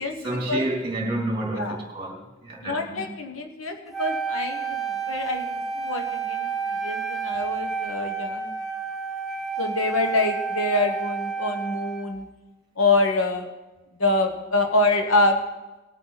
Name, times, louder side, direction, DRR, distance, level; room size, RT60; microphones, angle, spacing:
voice 1, 0.2-3.0, right 1 dB, 25° right, 3.0 m, -29 dB
voice 2, 2.6-8.5 9.6-12.3 12.8-13.4 14.0-15.4, left 2 dB, 90° left, 1.3 m, -25 dB
Wind instrument woodwind instrument, 3.9-12.2, right 5 dB, ahead, 1.1 m, -30 dB
19.5 x 8.5 x 4.1 m
head